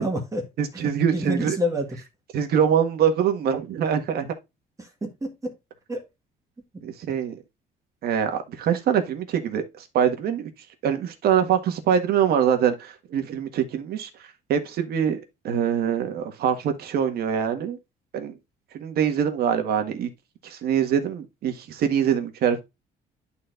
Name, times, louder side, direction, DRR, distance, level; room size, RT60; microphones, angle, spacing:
voice 1, 0.0-0.4 1.1-1.9 4.8-5.5 5.9-6.0, equal, 20° right, 1.7 m, -28 dB
voice 2, 0.6-1.6 2.3-4.3 6.8-7.4 8.0-10.5 10.8-14.1 14.5-17.8 18.1-18.3 18.7-20.1 20.4-22.6, right 8 dB, 65° right, 1.6 m, -24 dB
11.5 x 4.3 x 2.5 m
cardioid pair, 110°, 17 cm